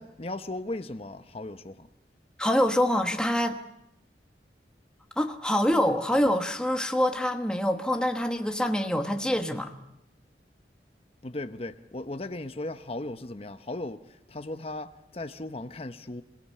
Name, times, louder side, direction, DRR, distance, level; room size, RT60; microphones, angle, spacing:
voice 1, 0.0-1.9 11.2-16.2, left 2 dB, 35° left, 0.8 m, -37 dB
voice 2, 2.4-3.6 5.2-9.7, equal, 5° left, 1.2 m, -25 dB
27.0 x 17.5 x 8.4 m
head